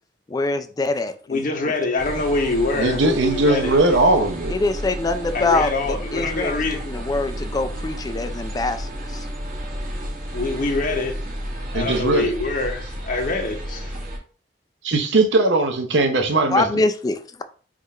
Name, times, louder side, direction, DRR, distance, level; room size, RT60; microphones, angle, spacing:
voice 1, 0.3-1.4 4.5-9.3 16.5-17.4, left 2 dB, 20° left, 9 dB, 0.3 m, -24 dB
voice 2, 1.3-3.8 5.3-6.8 10.3-11.4 11.7-13.9, left 3 dB, 50° left, 4 dB, 0.7 m, -25 dB
sound 1, 2.0-14.2, equal, 50° right, 1.3 m, -32 dB
voice 3, 2.8-4.5 11.7-12.3 14.8-16.6, right 2 dB, 85° right, 5 dB, 0.7 m, -19 dB
3.6 x 2.4 x 4.2 m, 0.40 s
head